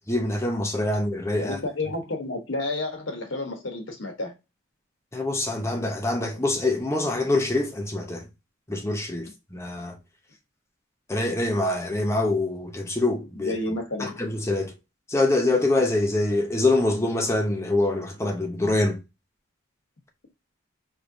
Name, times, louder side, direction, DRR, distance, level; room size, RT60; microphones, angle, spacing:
voice 1, 0.1-1.6 5.1-8.2 8.7-10.0 11.1-13.5 14.0-14.7 15.1-19.0, left 2 dB, 15° left, 0.6 m, -25 dB
voice 2, 1.4-4.3 13.3-14.2, left 2 dB, 60° left, 1.0 m, -31 dB
4.7 x 3.1 x 2.6 m
head